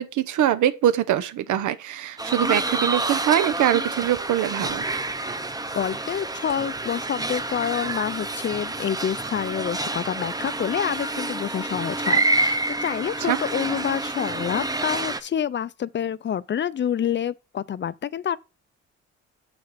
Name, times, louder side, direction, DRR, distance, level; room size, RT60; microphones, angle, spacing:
voice 1, 0.0-4.8 13.2-13.4, right 11 dB, 75° right, 0.9 m, -23 dB
sound 1, 2.2-15.2, right 2 dB, 10° right, 0.7 m, -28 dB
voice 2, 5.8-18.4, left 9 dB, 40° left, 0.5 m, -28 dB
7.0 x 6.5 x 4.2 m
cardioid pair, 90°, 30 cm